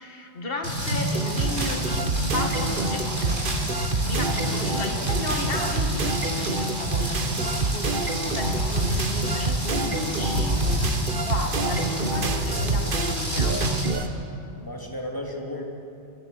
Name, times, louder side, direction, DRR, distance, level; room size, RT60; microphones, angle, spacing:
voice 1, 0.0-3.3 3.7-10.6 11.3-13.7, left 2 dB, 55° left, 3 dB, 2.4 m, -34 dB
Rain, 0.6-13.9, right 1 dB, 80° right, 8.0 m, -28 dB
sound 1, 1.1-14.1, right 3 dB, 50° right, 1.4 m, -28 dB
voice 2, 11.4-12.2 12.8-13.0 14.6-15.6, left 1 dB, 20° left, 0 dB, 3.2 m, -36 dB
26.0 x 21.0 x 8.0 m, 2.8 s
omnidirectional pair, 1.1 m